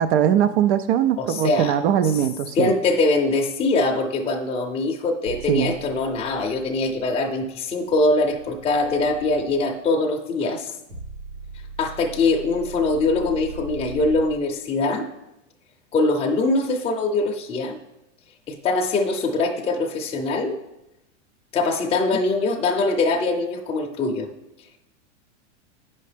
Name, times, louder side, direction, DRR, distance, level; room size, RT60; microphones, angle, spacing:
voice 1, 0.0-2.7 5.5-5.7, right 9 dB, 65° right, 11 dB, 0.5 m, -20 dB
voice 2, 1.2-1.8 2.5-10.7 11.8-15.1 15.9-17.8 18.5-20.6 21.5-24.3, left 2 dB, 15° left, 1 dB, 0.5 m, -22 dB
sound 1, 5.2-9.4 10.9-14.2, right 4 dB, 85° right, 1.5 m, -40 dB
8.2 x 5.5 x 3.3 m, 0.89 s
supercardioid pair, 125°, 36 cm